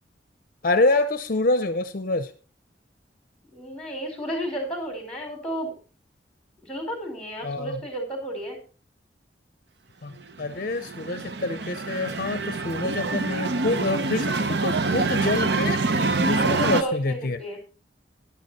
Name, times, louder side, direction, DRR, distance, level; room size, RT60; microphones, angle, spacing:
voice 1, 0.6-2.3 7.4-7.8 10.0-17.4, left 2 dB, 50° left, 11 dB, 0.7 m, -26 dB
voice 2, 3.5-5.8 6.7-8.6 16.3-17.7, right 1 dB, 5° left, 3 dB, 4.6 m, -32 dB
sound 1, 10.5-16.8, right 3 dB, 70° right, 0.8 m, -26 dB
12.0 x 11.0 x 4.2 m, 0.36 s
head